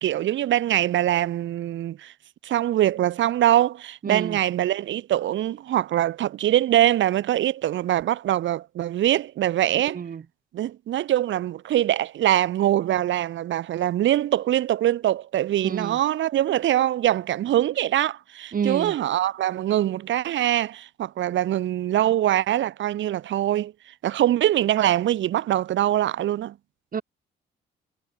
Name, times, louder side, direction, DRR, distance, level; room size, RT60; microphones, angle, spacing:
voice 1, 0.0-2.1 2.4-10.0 10.5-23.7 24.0-26.5, right 12 dB, 70° right, 1.1 m, -23 dB
voice 2, 4.0-4.4 9.9-10.2 15.6-16.0 18.5-18.9 26.9-27.0, right 7 dB, 45° right, 2.8 m, -28 dB
cardioid pair, 90°, 20 cm